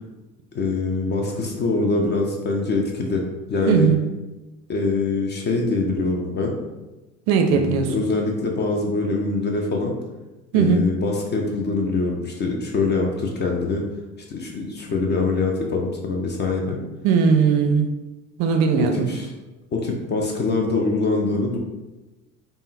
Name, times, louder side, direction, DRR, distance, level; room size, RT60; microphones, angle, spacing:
voice 1, 0.5-3.9 4.7-6.5 7.5-9.9 10.5-13.8 14.3-16.8 18.8-19.3 19.7-21.6, left 3 dB, 25° left, 1 dB, 0.4 m, -24 dB
voice 2, 3.7-4.0 7.3-7.9 10.5-10.8 17.0-17.9 18.4-19.1, right 6 dB, 50° right, 5 dB, 0.5 m, -18 dB
3.5 x 2.1 x 2.6 m, 1.1 s
hypercardioid pair, 70°, 44 cm